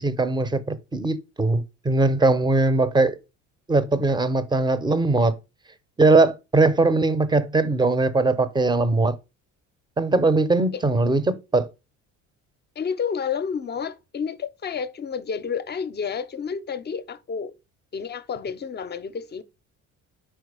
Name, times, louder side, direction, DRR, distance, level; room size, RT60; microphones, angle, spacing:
voice 1, 0.0-3.2 3.7-5.3 6.0-9.2 10.0-11.7, right 3 dB, 15° right, 0.6 m, -20 dB
voice 2, 12.8-17.5 17.9-19.4, left 6 dB, 30° left, 0.5 m, -30 dB
4.6 x 4.4 x 4.8 m
cardioid pair, 90°, 34 cm